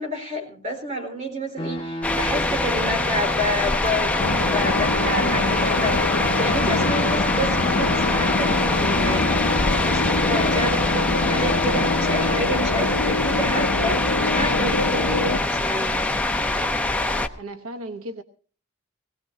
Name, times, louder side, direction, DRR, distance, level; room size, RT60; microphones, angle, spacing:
voice 1, 0.0-4.2 4.5-9.3 9.8-10.0 10.3-16.1, equal, 35° right, 3 dB, 4.3 m, -29 dB
sound 1, 1.6-12.4, left 1 dB, 25° left, 1.3 m, -30 dB
sound 2, 2.0-17.3, left 2 dB, 5° left, 0.7 m, -24 dB
sound 3, 4.2-15.4, left 3 dB, 70° left, 0.6 m, -25 dB
voice 2, 17.4-18.2, right 1 dB, 90° right, 8 dB, 1.0 m, -35 dB
20.5 x 17.0 x 2.7 m, 0.38 s
head